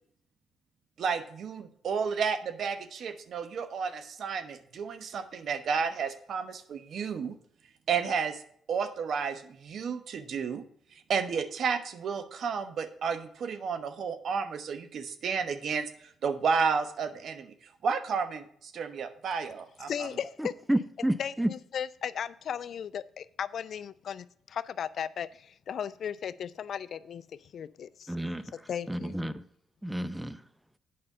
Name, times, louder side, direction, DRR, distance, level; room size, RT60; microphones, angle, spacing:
voice 1, 1.0-7.3 7.9-8.4 8.7-10.6 11.1-15.9 16.2-17.5 17.8-20.1, right 6 dB, 65° right, 1.1 m, -31 dB
voice 2, 19.9-20.5 21.0-28.1 28.4-29.2, left 8 dB, 65° left, 0.4 m, -36 dB
voice 3, 20.4-21.5 28.1-28.4 28.9-29.4 29.8-30.4, right 1 dB, 5° right, 0.7 m, -30 dB
8.7 x 5.5 x 6.7 m
supercardioid pair, 65°, 0 cm